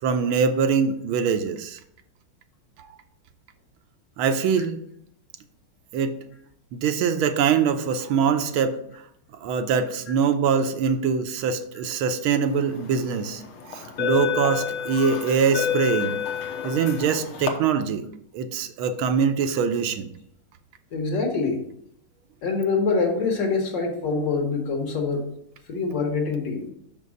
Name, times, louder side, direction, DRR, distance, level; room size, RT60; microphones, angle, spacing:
voice 1, 0.0-1.8 4.2-4.8 5.9-6.2 6.7-8.8 9.4-16.2 16.6-18.0 18.3-20.1, right 6 dB, 85° right, 8 dB, 1.5 m, -23 dB
sound 1, 12.7-13.0 13.7-17.5, left 9 dB, 80° left, 1.8 m, -28 dB
voice 2, 20.9-21.6 22.4-25.3 25.7-26.7, left 4 dB, 60° left, 2 dB, 2.0 m, -25 dB
6.1 x 5.4 x 6.3 m, 0.72 s
omnidirectional pair, 2.3 m